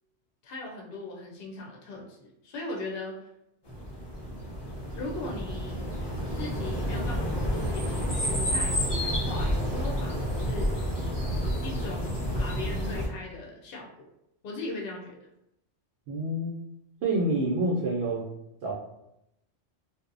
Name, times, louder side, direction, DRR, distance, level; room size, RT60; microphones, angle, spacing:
voice 1, 0.4-3.3 5.0-5.9 6.3-10.8 11.6-14.1 14.4-15.2, left 2 dB, 60° left, -2 dB, 0.7 m, -39 dB
sound 1, 3.7-13.1, equal, 30° left, 0.5 m, -30 dB
voice 2, 16.1-16.5 17.0-18.3 18.6-18.7, right 1 dB, 70° right, -4 dB, 0.8 m, -27 dB
2.7 x 2.0 x 2.5 m, 0.84 s
omnidirectional pair, 1.2 m